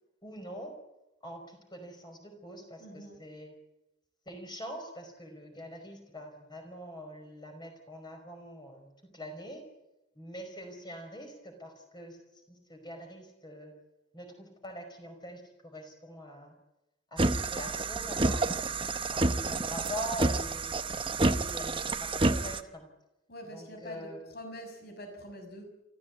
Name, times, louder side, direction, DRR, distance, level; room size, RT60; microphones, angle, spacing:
voice 1, 0.2-0.7 1.2-3.5 4.2-8.9 9.1-9.6 10.1-13.7 14.1-16.6 17.1-18.8 19.1-20.8 21.3-22.9 23.5-24.3, equal, 20° left, 5 dB, 5.2 m, -44 dB
voice 2, 2.8-3.2 23.3-25.6, equal, 55° left, 4 dB, 6.3 m, -45 dB
sound 1, 17.2-22.6, right 2 dB, 25° right, 0.9 m, -29 dB
28.5 x 15.0 x 8.5 m, 0.95 s
head